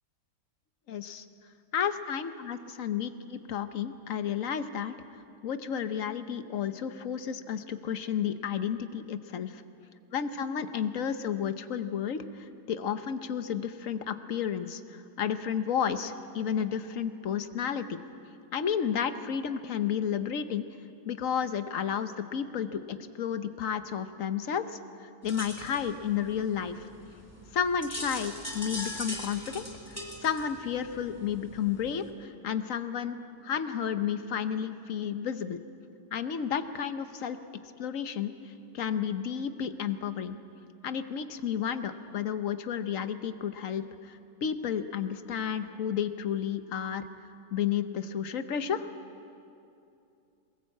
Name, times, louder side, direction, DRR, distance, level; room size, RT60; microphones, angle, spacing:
voice 1, 0.9-1.2 1.7-5.0 5.4-9.6 10.1-18.0 18.5-20.6 21.1-26.9 27.5-33.2 33.4-35.6 36.1-37.4 37.8-40.4 40.8-47.0 47.5-48.9, left 8 dB, 55° left, 11 dB, 1.2 m, -32 dB
sound 1, 25.2-32.1, left 1 dB, 10° left, 2.6 m, -41 dB
22.5 x 20.0 x 8.4 m, 2.6 s
omnidirectional pair, 1.8 m